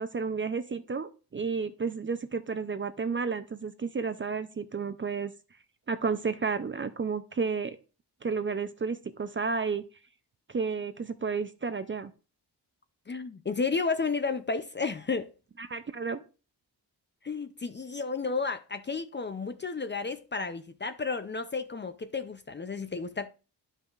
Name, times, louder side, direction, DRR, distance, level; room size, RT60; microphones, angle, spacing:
voice 1, 0.0-5.3 5.9-7.8 8.2-9.8 10.5-12.1 15.6-16.2, right 5 dB, 30° right, 0.4 m, -32 dB
voice 2, 13.1-15.3 17.2-23.3, left 4 dB, 25° left, 0.4 m, -32 dB
11.5 x 5.4 x 2.4 m
wide cardioid pair, 120°, 42 cm